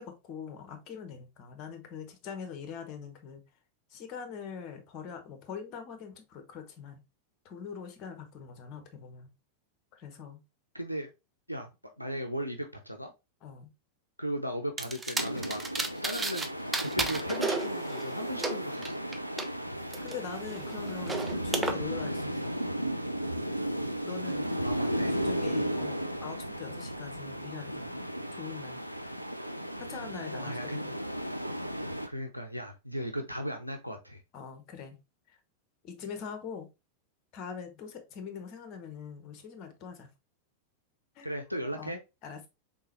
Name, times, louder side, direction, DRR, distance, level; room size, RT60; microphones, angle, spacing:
voice 1, 0.0-3.4 3.9-7.0 7.4-9.3 9.9-10.4 13.4-13.7 17.4-17.5 20.0-22.5 24.0-24.6 25.1-28.0 28.3-28.8 29.8-30.9 34.3-35.0 35.3-35.4 35.8-36.7 37.3-40.1 41.1-41.3 41.7-42.5, left 6 dB, 40° left, 0.9 m, -43 dB
voice 2, 10.7-11.1 11.5-11.7 12.0-13.1 14.2-15.6 16.0-16.5 16.8-19.1 24.6-25.2 30.3-30.9 32.1-34.2 41.2-42.0, equal, 90° left, 0.5 m, -36 dB
sound 1, 14.8-16.5 16.7-19.5 19.9-21.7, right 3 dB, 15° right, 0.6 m, -33 dB
sound 2, 15.2-32.1, equal, 90° right, 0.3 m, -35 dB
3.8 x 3.5 x 2.9 m
figure-of-eight pair, 90°, 0 cm